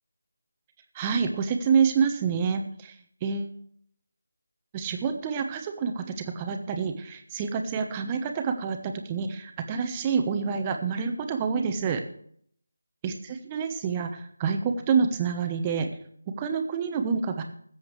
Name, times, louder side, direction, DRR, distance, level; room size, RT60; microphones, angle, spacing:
voice 1, 0.9-2.9 3.2-3.5 4.7-12.0 13.0-15.9 16.4-17.4, right 6 dB, 15° right, 5 dB, 1.2 m, -27 dB
21.0 x 7.8 x 3.3 m, 0.63 s
figure-of-eight pair, 160°, 0 cm